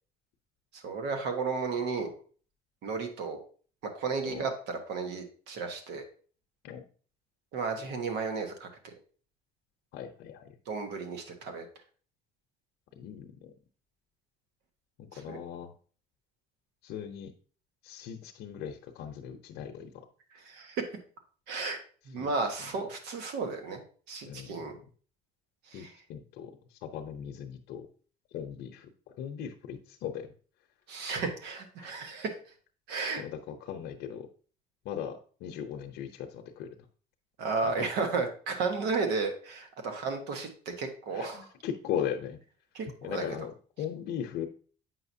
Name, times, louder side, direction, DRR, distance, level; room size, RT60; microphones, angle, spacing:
voice 1, 0.7-2.1 2.8-3.4 3.9-6.0 7.5-8.7 10.7-11.6 15.1-15.4 20.3-20.8 21.5-21.8 22.1-23.8 24.1-24.7 25.7-25.9 30.9-32.3 32.9-33.2 37.4-41.5 42.7-43.2, right 4 dB, 85° right, 5 dB, 1.3 m, -33 dB
voice 2, 9.9-10.5 13.0-13.5 15.0-15.7 16.8-17.3 17.8-19.9 22.2-22.3 24.2-24.8 25.7-26.5 26.8-27.9 28.3-28.9 29.2-30.3 33.2-34.3 34.8-36.7 41.1-42.4 43.0-44.5, left 9 dB, 80° left, 3 dB, 0.7 m, -38 dB
7.7 x 5.7 x 2.7 m, 0.42 s
cardioid pair, 110°, 17 cm